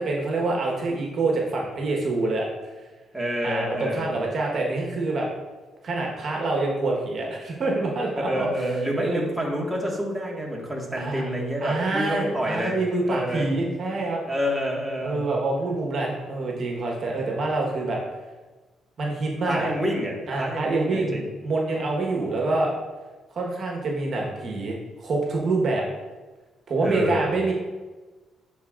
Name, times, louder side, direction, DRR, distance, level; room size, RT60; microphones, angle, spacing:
voice 1, 0.0-2.5 3.4-5.3 5.8-9.3 11.0-11.3 11.6-14.2 15.0-18.0 19.0-19.7 20.3-22.7 23.3-25.8 26.7-27.5, right 2 dB, 55° right, -1 dB, 1.2 m, -26 dB
voice 2, 3.1-4.2 8.2-12.8 13.0-13.5 14.3-15.2 19.5-21.3 26.8-27.3, equal, 5° right, -3 dB, 1.6 m, -28 dB
10.5 x 4.2 x 2.5 m, 1.3 s
cardioid pair, 90°, 0 cm